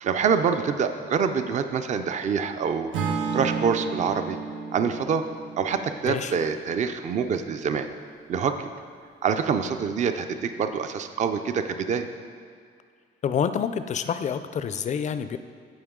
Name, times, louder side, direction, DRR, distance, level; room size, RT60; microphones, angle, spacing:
voice 1, 0.0-2.9 3.3-4.4 4.7-5.3 5.6-7.9 8.3-8.7 9.2-12.1, right 6 dB, 40° right, 8 dB, 0.4 m, -26 dB
Acoustic guitar / Strum, 2.9-7.2, right 5 dB, 80° right, 1.1 m, -32 dB
voice 2, 13.2-15.4, left 7 dB, 40° left, 11 dB, 0.4 m, -27 dB
15.0 x 5.4 x 3.7 m, 2.1 s
cardioid pair, 150°, 20 cm